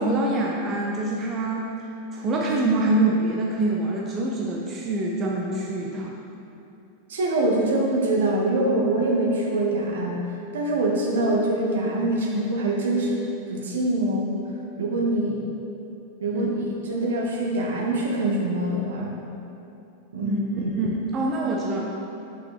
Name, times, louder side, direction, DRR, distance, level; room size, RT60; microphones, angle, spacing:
voice 1, 0.0-1.6 2.1-6.1 16.3-16.5 20.2-20.4 20.8-21.8, right 2 dB, 30° right, -2 dB, 0.8 m, -25 dB
voice 2, 7.1-10.2 10.5-14.4 14.8-15.5 16.2-19.2 20.1-20.7, right 1 dB, 60° right, -1 dB, 1.3 m, -24 dB
6.1 x 5.8 x 5.0 m, 2.9 s
figure-of-eight pair, 90°, 0 cm